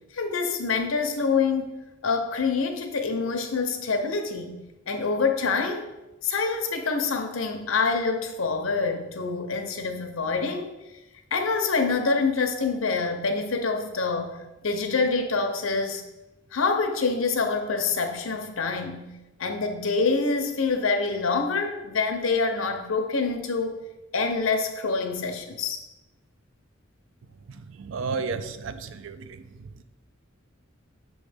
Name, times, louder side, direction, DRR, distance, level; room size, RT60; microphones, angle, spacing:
voice 1, 0.1-4.5 4.9-5.9 6.2-10.7 11.3-14.4 14.6-16.0 16.5-19.1 19.4-23.8 24.1-25.8, left 4 dB, 85° left, 6 dB, 0.7 m, -26 dB
voice 2, 27.8-29.3, right 4 dB, 70° right, 11 dB, 0.4 m, -32 dB
6.3 x 3.2 x 5.0 m, 1.0 s
head